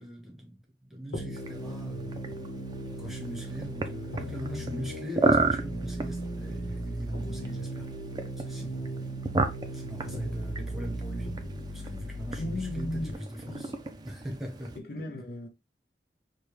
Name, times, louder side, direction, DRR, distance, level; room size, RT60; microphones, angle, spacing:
voice 1, 0.0-2.2 3.0-7.9 8.4-9.0 9.7-11.3 11.7-13.7 14.0-14.8, equal, ahead, 0.9 m, -41 dB
sound 1, 1.1-13.1, right 1 dB, 90° left, 1.1 m, -37 dB
sound 2, 1.4-14.8, right 3 dB, 25° right, 0.4 m, -34 dB
voice 2, 12.4-13.2 13.5-13.8 14.8-15.5, left 1 dB, 60° left, 0.6 m, -36 dB
4.8 x 2.3 x 3.0 m
head